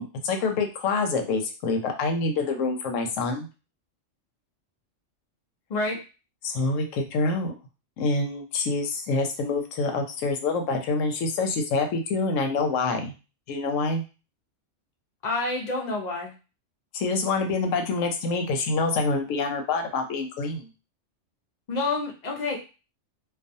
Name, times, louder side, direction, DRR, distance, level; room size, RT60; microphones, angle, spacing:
voice 1, 0.0-3.5 6.4-7.5 8.0-13.1 13.5-14.0 16.9-20.7, left 3 dB, 80° left, 4 dB, 1.0 m, -26 dB
voice 2, 15.2-16.3 21.7-22.6, left 3 dB, 60° left, 1 dB, 0.4 m, -28 dB
2.4 x 2.2 x 2.6 m, 0.32 s
omnidirectional pair, 1.3 m